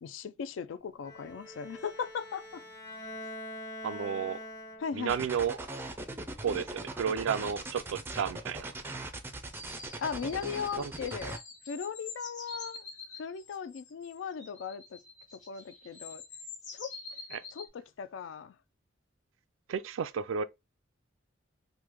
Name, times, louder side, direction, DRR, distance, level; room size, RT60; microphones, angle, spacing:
voice 1, 0.0-2.6 4.8-5.2 10.0-11.4 11.7-12.9 13.2-15.0 15.3-16.2 16.7-16.9 17.5-18.5, left 6 dB, 75° left, 0.3 m, -38 dB
Bowed string instrument, 1.0-5.2, left 1 dB, 20° left, 0.7 m, -44 dB
voice 2, 3.8-4.4 4.9-5.6 6.4-8.7 10.8-10.9 17.3-17.4 19.7-20.4, right 7 dB, 85° right, 0.3 m, -32 dB
sound 1, 5.1-11.4, right 2 dB, 10° right, 0.3 m, -40 dB
sound 2, 9.5-17.7, left 4 dB, 40° left, 1.3 m, -47 dB
3.0 x 2.1 x 3.4 m
head